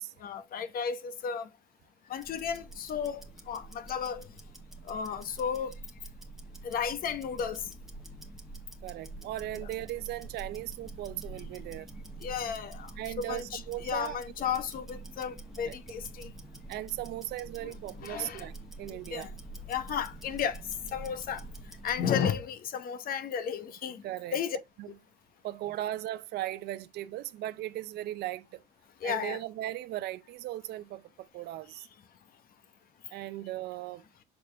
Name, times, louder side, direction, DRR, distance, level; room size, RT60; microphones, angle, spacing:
voice 1, 0.2-1.5 2.1-4.3 4.8-5.7 6.6-7.7 12.2-16.3 17.6-17.7 18.0-18.5 18.9-19.3 19.7-21.5 21.8-24.0 24.3-24.6 24.9-25.0 29.0-29.4, left 7 dB, 60° left, 0.9 m, -34 dB
Tick-tock, 2.1-22.1, right 2 dB, ahead, 1.3 m, -46 dB
voice 2, 8.8-11.9 13.0-14.2 15.6-15.8 16.7-19.3 22.1-22.3 24.0-24.4 24.8-24.9 25.4-28.6 29.0-31.9 33.1-34.0, right 14 dB, 75° right, 0.6 m, -38 dB
6.7 x 4.3 x 3.2 m
cardioid pair, 110°, 17 cm